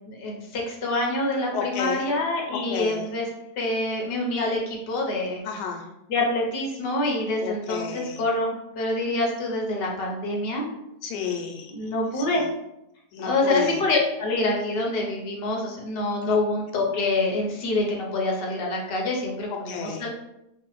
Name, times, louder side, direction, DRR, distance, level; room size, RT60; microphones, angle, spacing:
voice 1, 0.1-3.3 3.6-5.4 6.1-10.6 11.7-12.4 13.2-20.1, left 2 dB, 60° left, -1 dB, 0.6 m, -26 dB
voice 2, 1.5-2.0 2.7-3.0 5.4-5.8 7.3-8.2 11.0-11.7 12.1-12.4 13.1-13.8 16.2-16.4 19.7-20.0, left 7 dB, 90° left, 3 dB, 1.2 m, -31 dB
3.2 x 2.0 x 3.0 m, 0.85 s
omnidirectional pair, 1.7 m